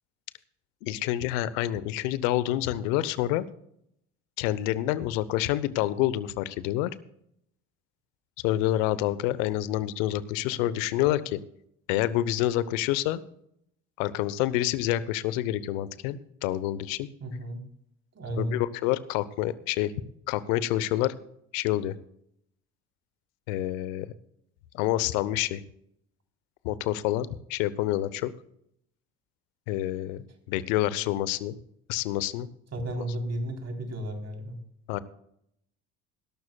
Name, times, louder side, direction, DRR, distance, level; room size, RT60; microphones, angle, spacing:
voice 1, 0.8-3.5 4.4-6.9 8.4-11.4 11.9-13.2 14.0-17.1 18.3-19.9 20.3-21.2 21.5-21.9 23.5-24.1 24.7-25.6 26.6-28.3 29.7-31.5 31.9-32.5 34.9-35.0, left 14 dB, 75° left, 17 dB, 0.9 m, -27 dB
voice 2, 17.2-17.6 18.1-18.6 32.7-34.6, right 1 dB, 40° right, 3 dB, 3.7 m, -33 dB
19.5 x 12.0 x 2.3 m, 0.73 s
hypercardioid pair, 55°, 39 cm